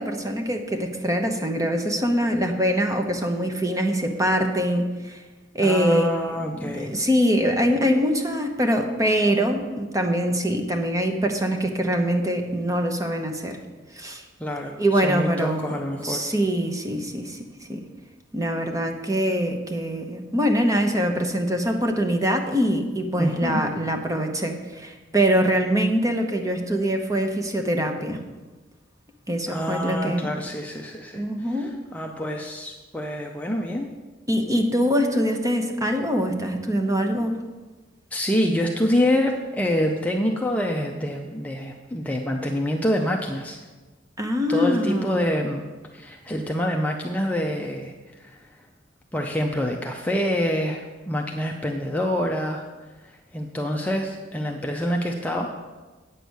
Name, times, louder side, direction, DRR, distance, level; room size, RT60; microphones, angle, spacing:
voice 1, 0.0-5.2 5.5-6.1 6.6-13.6 13.9-14.2 14.8-15.8 16.0-17.4 17.7-17.8 18.3-28.2 29.3-30.3 31.1-31.7 34.3-37.4 44.2-45.2, equal, 20° right, 4 dB, 0.9 m, -23 dB
voice 2, 5.6-6.9 14.4-16.2 23.2-23.6 29.5-33.9 38.1-43.6 44.5-45.6 45.9-48.6 49.1-52.7 53.0-55.5, equal, 10° left, 1 dB, 0.6 m, -26 dB
9.1 x 6.9 x 6.3 m, 1.2 s
head